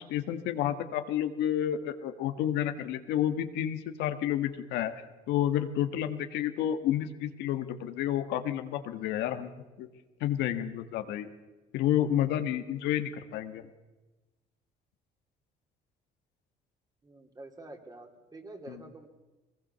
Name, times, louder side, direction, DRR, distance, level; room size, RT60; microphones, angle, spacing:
voice 1, 0.0-4.9 5.3-9.5 9.8-9.9 10.2-11.3 11.7-13.7 18.7-18.8, left 11 dB, 85° left, 8 dB, 1.5 m, -30 dB
voice 2, 17.0-19.1, right 2 dB, 20° right, 5 dB, 3.0 m, -47 dB
22.5 x 19.5 x 6.8 m, 1.1 s
cardioid pair, 110°, 17 cm